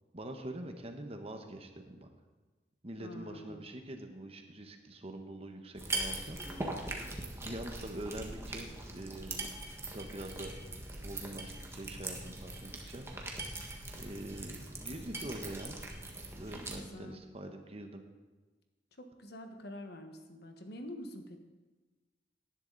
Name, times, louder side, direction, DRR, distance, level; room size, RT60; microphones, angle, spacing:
voice 1, 0.1-2.1 2.8-6.4 7.4-8.7 8.9-9.5 9.9-10.5 11.0-13.1 13.9-15.8 16.3-18.0, right 1 dB, 35° right, 5 dB, 1.2 m, -44 dB
voice 2, 3.0-3.7 16.7-17.2 19.0-21.4, left 1 dB, 60° left, 5 dB, 1.4 m, -46 dB
sound 1, 5.8-16.8, right 2 dB, 15° right, 1.5 m, -41 dB
18.0 x 11.0 x 4.0 m, 1.2 s
head